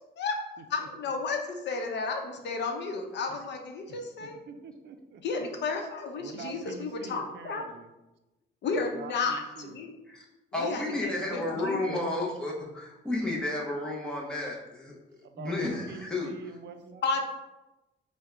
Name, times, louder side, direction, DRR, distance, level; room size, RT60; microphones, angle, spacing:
voice 1, 0.7-4.4 5.2-7.6 8.6-9.9 10.6-12.0 17.0-17.2, left 4 dB, 60° left, 3 dB, 0.7 m, -32 dB
voice 2, 3.9-5.4 6.2-7.9 8.9-9.8 10.6-10.7 15.2-17.0, right 5 dB, 60° right, 7 dB, 0.5 m, -45 dB
voice 3, 10.5-15.0 15.3-16.3, left 2 dB, 5° left, -3 dB, 0.8 m, -32 dB
3.6 x 2.2 x 4.4 m, 0.99 s
cardioid pair, 90°, 20 cm